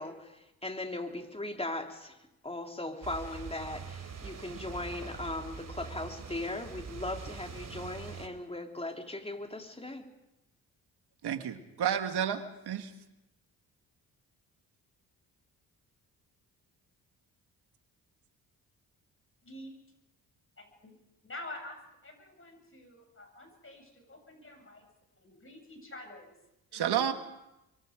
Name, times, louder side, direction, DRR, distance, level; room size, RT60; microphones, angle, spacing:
voice 1, 0.0-2.2 2.4-10.1, left 2 dB, 15° left, 3 dB, 3.4 m, -38 dB
sound 1, 3.0-8.3, right 5 dB, 50° right, 3.4 m, -43 dB
voice 2, 11.2-12.9 26.7-27.1, right 9 dB, 70° right, 7 dB, 2.0 m, -31 dB
voice 3, 20.6-20.9 21.2-24.9 25.1-26.3 26.7-27.1, left 1 dB, 30° left, 4 dB, 7.5 m, -48 dB
26.5 x 23.5 x 5.1 m, 0.91 s
supercardioid pair, 55°, 41 cm